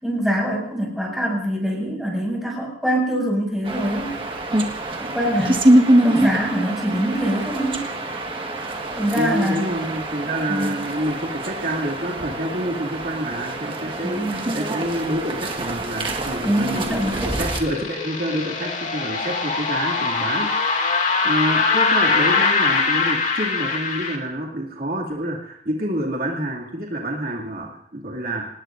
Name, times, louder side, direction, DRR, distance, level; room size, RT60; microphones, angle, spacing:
voice 1, 0.0-4.2 5.0-5.7 6.0-7.9 8.9-9.6 10.5-10.8 14.0-14.4 16.4-17.4, equal, ahead, -2 dB, 6.3 m, -24 dB
sound 1, 3.6-17.6, right 1 dB, 30° right, 1.6 m, -24 dB
voice 2, 9.2-20.5 20.8-28.5, right 1 dB, 55° right, -2 dB, 2.5 m, -28 dB
sound 2, 16.4-24.2, left 4 dB, 50° left, 2.4 m, -22 dB
27.0 x 19.0 x 2.6 m, 0.69 s
head